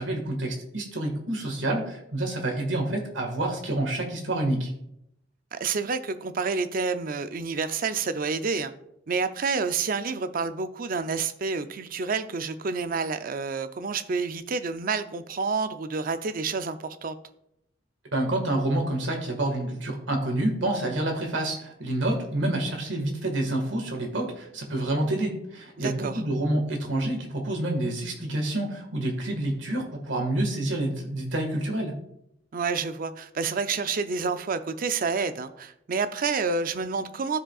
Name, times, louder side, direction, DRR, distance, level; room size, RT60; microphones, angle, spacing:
voice 1, 0.0-4.7 18.1-31.9, right 1 dB, 70° right, 3 dB, 1.7 m, -28 dB
voice 2, 5.5-8.7 9.1-17.1 25.8-26.2 32.5-37.4, right 4 dB, 45° right, 10 dB, 0.5 m, -29 dB
13.5 x 5.0 x 2.4 m, 0.78 s
head